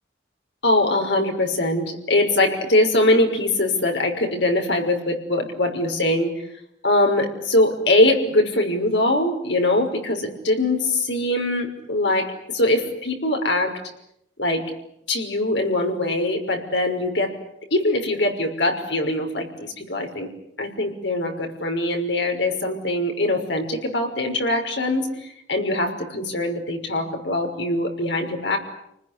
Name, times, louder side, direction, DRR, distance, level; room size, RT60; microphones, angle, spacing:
voice 1, 0.6-6.4 6.8-13.8 14.4-14.7 15.1-17.3 17.7-20.3 20.6-28.6, left 1 dB, 70° left, 3 dB, 5.8 m, -22 dB
29.5 x 20.5 x 9.9 m, 0.77 s
head